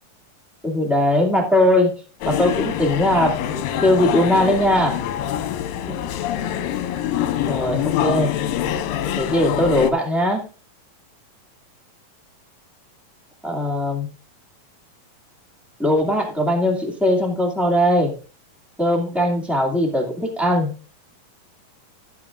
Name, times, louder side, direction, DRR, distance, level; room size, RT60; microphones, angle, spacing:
voice 1, 0.6-1.9 2.2-3.4 3.8-5.0 7.5-8.3 9.1-10.4 13.4-14.1 15.8-18.1 18.8-20.7, left 1 dB, ahead, 1 dB, 0.9 m, -19 dB
sound 1, 2.2-9.9, left 10 dB, 85° left, 2.6 m, -25 dB
16.5 x 7.4 x 2.4 m, 0.35 s
omnidirectional pair, 4.1 m